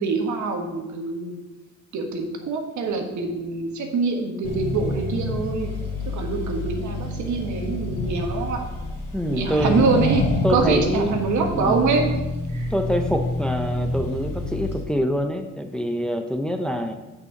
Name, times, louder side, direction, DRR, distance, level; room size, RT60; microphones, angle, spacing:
voice 1, 0.0-1.4 1.9-5.7 6.1-8.6 9.3-10.2 10.5-12.1 12.5-12.7, right 4 dB, 70° right, 3 dB, 1.5 m, -24 dB
Accelerating revving vroom, 4.4-14.8, left 2 dB, 50° left, 2.4 m, -28 dB
voice 2, 9.1-9.9 10.4-11.2 11.5-11.8 12.7-17.0, equal, 5° left, 5 dB, 0.7 m, -25 dB
6.8 x 5.8 x 5.9 m, 1.1 s
cardioid pair, 90°, 30 cm